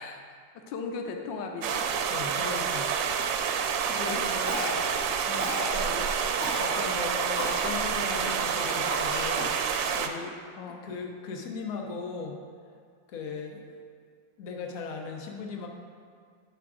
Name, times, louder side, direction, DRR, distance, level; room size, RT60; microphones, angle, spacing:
voice 1, 0.0-1.9 4.1-5.0 5.3-5.7 8.8-9.1 10.6-10.9, left 4 dB, 90° left, 4 dB, 1.3 m, -39 dB
sound 1, 1.6-10.1, right 7 dB, 85° right, 1.3 m, -28 dB
voice 2, 2.1-2.9 3.9-4.3 5.7-6.1 6.5-10.4 10.8-12.4 13.1-13.8 14.4-15.7, left 4 dB, 55° left, 1 dB, 1.2 m, -37 dB
Cough, 4.5-5.0 5.4-5.8 6.4-6.7 7.4-7.7 8.2-8.3 8.9-9.7, equal, 10° left, 1.6 m, -34 dB
8.9 x 6.0 x 3.6 m, 2.2 s
omnidirectional pair, 2.0 m